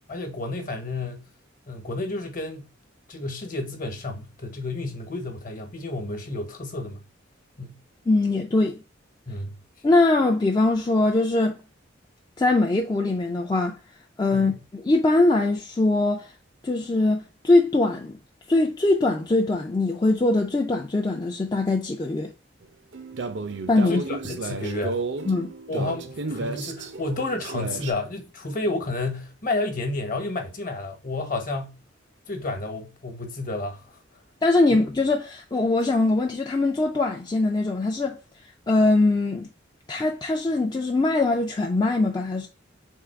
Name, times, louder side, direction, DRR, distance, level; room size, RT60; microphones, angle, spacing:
voice 1, 0.1-1.2 1.7-2.6 3.1-7.0 7.6-7.8 9.3-9.6 14.3-14.6 23.9-25.0 25.7-31.8 32.3-34.0, left 2 dB, 45° left, 1.1 m, -31 dB
voice 2, 8.1-8.8 9.8-11.6 12.4-13.8 14.2-16.3 16.6-18.2 18.5-22.3 23.7-24.0 25.3-25.5 34.4-38.2 38.7-39.5 39.9-42.5, left 2 dB, 20° left, 0.4 m, -22 dB
sound 1, 22.9-27.9, right 3 dB, 65° right, 0.6 m, -33 dB
3.7 x 2.8 x 4.5 m
head